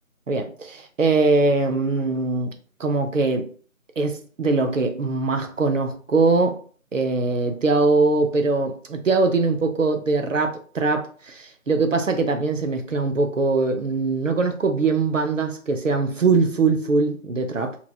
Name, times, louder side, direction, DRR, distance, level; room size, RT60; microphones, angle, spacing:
voice 1, 0.3-2.5 2.8-3.5 4.0-6.6 6.9-17.8, right 3 dB, 65° right, 0.6 m, -22 dB
2.8 x 2.3 x 2.7 m
figure-of-eight pair, 175°, 42 cm